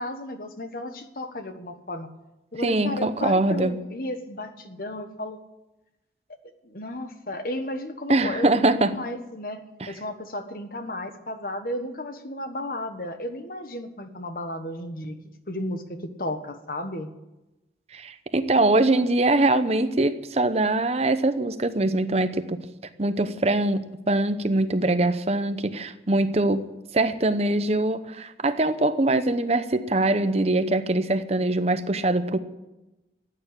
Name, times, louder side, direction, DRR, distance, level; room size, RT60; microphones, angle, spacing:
voice 1, 0.0-2.1 2.5-5.4 6.6-9.6 9.9-15.2 15.5-17.1, left 1 dB, 55° left, 8 dB, 1.4 m, -33 dB
voice 2, 2.6-3.8 8.1-9.0 9.8-9.9 17.9-22.6 23.0-32.4, right 2 dB, 35° right, 10 dB, 0.8 m, -23 dB
14.0 x 9.0 x 9.9 m, 0.99 s
head